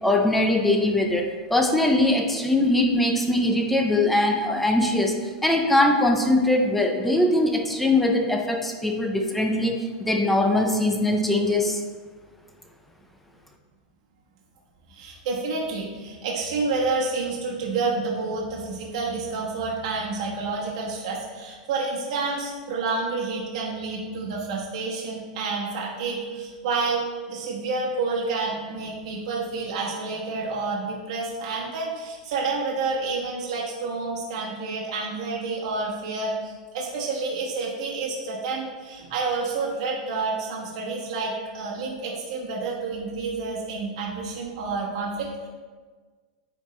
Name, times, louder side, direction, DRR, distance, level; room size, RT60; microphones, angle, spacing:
voice 1, 0.0-11.8, left 1 dB, 5° left, 3 dB, 0.4 m, -22 dB
voice 2, 14.9-27.0 27.3-45.5, right 3 dB, 55° right, -5 dB, 1.2 m, -29 dB
9.0 x 3.5 x 3.1 m, 1.4 s
supercardioid pair, 170°, 4 cm